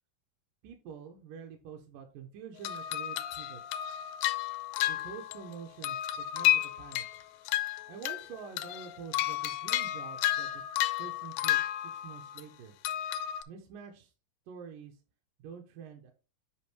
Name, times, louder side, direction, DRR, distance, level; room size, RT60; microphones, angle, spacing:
voice 1, 0.6-3.8 4.9-7.2 7.9-10.6 11.0-12.7 13.5-14.1 14.5-15.0 15.4-16.1, right 7 dB, 75° right, 2 dB, 2.3 m, -47 dB
sound 1, 2.6-5.5 5.8-8.3 8.6-12.4 12.8-13.4, left 13 dB, 85° left, 1.8 m, -32 dB
8.6 x 5.1 x 3.1 m, 0.32 s
omnidirectional pair, 4.1 m